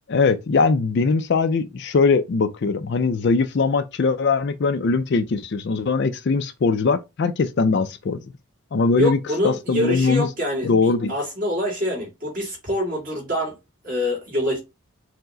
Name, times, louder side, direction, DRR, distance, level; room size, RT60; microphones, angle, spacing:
voice 1, 0.1-8.2 8.7-9.2 9.4-10.3 10.6-11.1, left 4 dB, 50° left, 0.4 m, -21 dB
voice 2, 9.0-13.6 13.8-14.6, left 1 dB, 40° right, 2.0 m, -25 dB
4.6 x 2.1 x 3.7 m
head